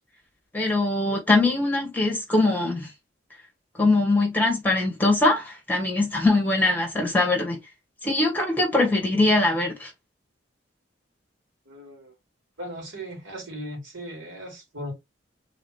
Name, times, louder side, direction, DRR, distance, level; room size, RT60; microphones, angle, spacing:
voice 1, 0.5-2.9 3.8-7.6 8.0-9.9, left 2 dB, 10° left, 1.7 m, -22 dB
voice 2, 11.7-12.1 12.6-14.9, equal, 80° right, 2.7 m, -37 dB
4.0 x 3.8 x 3.4 m
head